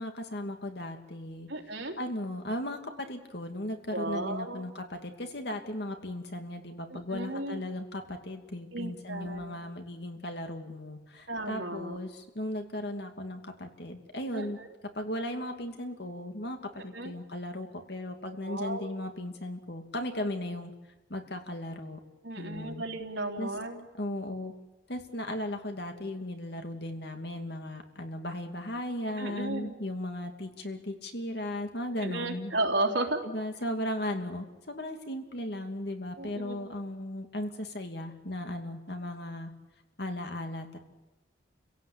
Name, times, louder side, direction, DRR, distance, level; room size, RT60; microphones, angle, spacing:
voice 1, 0.0-1.5 2.0-2.8 3.1-14.6 14.9-20.7 21.1-22.0 22.4-22.8 23.4-23.5 23.9-24.5 24.9-32.5 33.2-39.5 40.0-40.8, left 1 dB, 60° left, 5 dB, 2.7 m, -36 dB
voice 2, 1.5-1.9 3.9-4.7 6.9-7.6 8.7-9.6 11.3-12.0 14.3-14.6 16.9-17.1 18.4-18.9 22.2-23.9 29.2-29.7 32.0-33.2 36.2-36.7, right 2 dB, 80° right, 2 dB, 3.3 m, -34 dB
29.5 x 17.0 x 8.7 m, 1.1 s
head